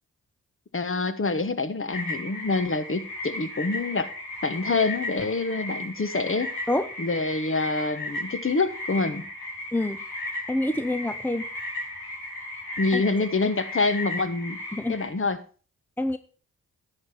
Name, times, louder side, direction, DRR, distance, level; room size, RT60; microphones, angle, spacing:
voice 1, 0.7-4.1 4.4-6.5 7.0-9.2 12.8-14.6 14.9-15.4, left 3 dB, 35° left, 10 dB, 1.3 m, -26 dB
sound 1, 1.9-15.1, left 1 dB, 85° left, 5.0 m, -35 dB
voice 2, 10.5-11.5 12.9-13.0 14.7-15.0 16.0-16.2, left 1 dB, 5° left, 11 dB, 0.6 m, -26 dB
11.0 x 7.9 x 4.4 m, 0.37 s
supercardioid pair, 45°, 36 cm